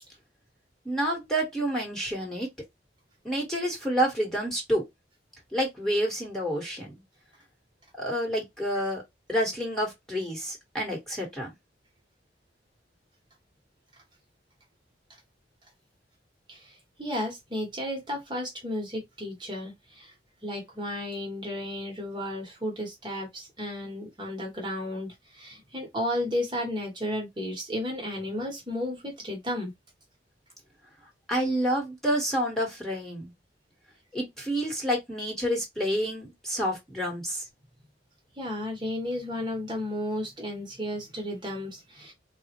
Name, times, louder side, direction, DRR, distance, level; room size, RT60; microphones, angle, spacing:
voice 1, 0.8-2.5 3.2-4.8 5.5-6.9 8.0-9.0 9.3-11.5 31.3-33.3 34.1-37.4, equal, ahead, 1.1 m, -28 dB
voice 2, 16.5-20.1 20.4-29.7 38.4-42.1, left 1 dB, 25° right, 0.9 m, -33 dB
3.6 x 2.1 x 2.8 m
head